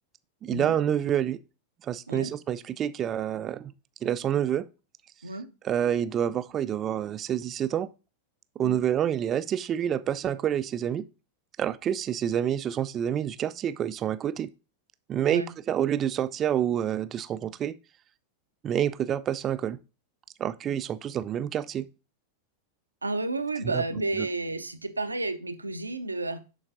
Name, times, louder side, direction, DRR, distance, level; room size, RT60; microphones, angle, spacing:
voice 1, 0.4-1.4 1.8-3.7 4.0-4.7 5.6-7.9 8.6-11.0 11.6-14.5 15.1-17.7 18.6-19.8 20.4-21.9 23.7-23.8 24.2-24.3, right 10 dB, 30° right, 0.3 m, -28 dB
voice 2, 23.0-26.4, right 2 dB, 80° right, 0.6 m, -31 dB
11.0 x 3.9 x 2.6 m
figure-of-eight pair, 90°, 0 cm